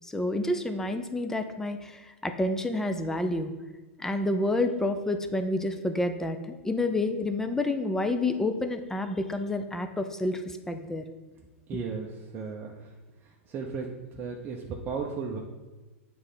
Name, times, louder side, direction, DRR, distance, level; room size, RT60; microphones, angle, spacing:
voice 1, 0.0-3.5 4.0-11.0 11.7-11.8, left 2 dB, 5° left, 7 dB, 0.5 m, -29 dB
voice 2, 11.7-12.1 12.3-12.7 13.5-13.9 14.2-15.4, right 5 dB, 30° right, 0 dB, 0.7 m, -34 dB
8.1 x 3.3 x 5.6 m, 1.2 s
hypercardioid pair, 125°, 7 cm